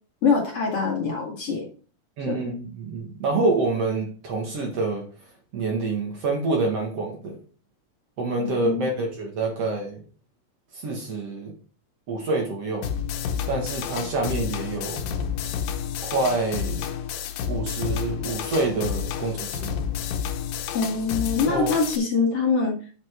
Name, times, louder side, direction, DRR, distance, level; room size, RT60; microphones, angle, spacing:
voice 1, 0.2-1.7 2.3-2.4 8.4-8.8 20.7-22.7, left 5 dB, 45° left, -1 dB, 2.5 m, -24 dB
voice 2, 2.2-5.0 5.5-7.4 8.2-10.0 10.7-11.5 12.1-12.9 13.5-15.0 16.0-16.9 17.5-19.8 21.5-21.7, right 3 dB, 55° right, 1 dB, 2.4 m, -27 dB
sound 1, 12.8-22.0, left 8 dB, 90° left, 2.6 m, -30 dB
8.0 x 5.9 x 4.4 m, 0.39 s
omnidirectional pair, 3.9 m